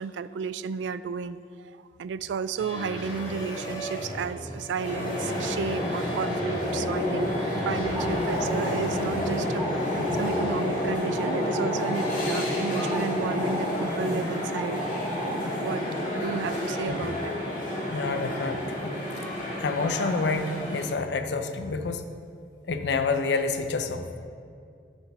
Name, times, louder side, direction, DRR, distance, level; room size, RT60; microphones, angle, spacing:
voice 1, 0.0-7.3 7.7-14.8 15.6-15.8 16.1-17.2, right 6 dB, 90° right, 15 dB, 0.3 m, -33 dB
sound 1, 2.6-10.3, equal, 25° left, 1.9 m, -36 dB
sound 2, 4.8-20.8, left 1 dB, 45° left, 2.2 m, -29 dB
sound 3, 7.9-16.6, right 1 dB, 15° right, 0.9 m, -39 dB
voice 2, 17.9-19.0 19.6-22.0 22.7-24.1, left 4 dB, 75° left, 7 dB, 0.6 m, -28 dB
7.2 x 6.0 x 5.4 m, 2.3 s
head